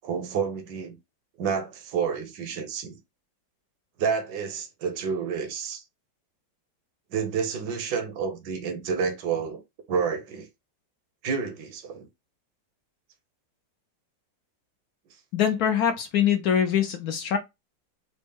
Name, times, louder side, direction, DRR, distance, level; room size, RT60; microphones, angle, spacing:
voice 1, 0.0-1.0 1.4-3.0 4.0-5.8 7.1-9.6 9.9-10.5 11.2-12.1, right 6 dB, 70° right, 1.5 m, -29 dB
voice 2, 15.3-17.4, left 8 dB, 65° left, 1.0 m, -23 dB
4.2 x 2.1 x 3.3 m
omnidirectional pair, 2.0 m